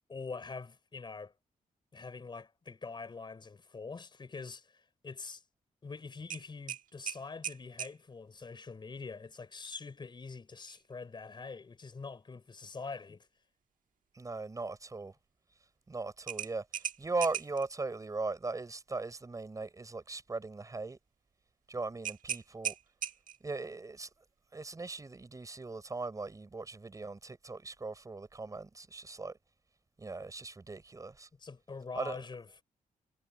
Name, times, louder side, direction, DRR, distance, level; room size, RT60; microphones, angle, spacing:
voice 1, 0.1-1.3 1.9-5.4 5.8-13.3 31.4-32.6, left 4 dB, 35° left, 4.1 m, -44 dB
sound 1, 6.3-8.0 10.6-10.8 11.2-11.3 16.3-17.7 22.0-23.5, right 9 dB, 70° right, 1.4 m, -38 dB
voice 2, 14.1-15.1 15.9-16.7 17.0-21.0 21.7-22.7 23.4-24.1 24.5-29.4 30.0-31.3 32.0-32.2, right 3 dB, 25° right, 4.4 m, -39 dB
wide cardioid pair, 135°, 14 cm